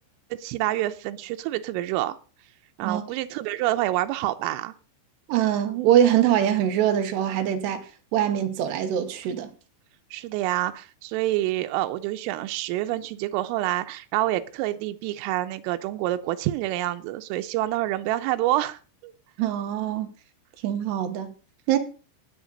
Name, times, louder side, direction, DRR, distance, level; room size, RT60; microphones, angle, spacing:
voice 1, 0.3-2.2 2.8-4.7 10.1-19.1, right 15 dB, 90° right, 3.3 m, -27 dB
voice 2, 5.3-9.5 19.4-20.1 20.6-21.3 21.7-21.8, right 10 dB, 75° right, 2.9 m, -23 dB
18.5 x 8.0 x 3.9 m
omnidirectional pair, 5.7 m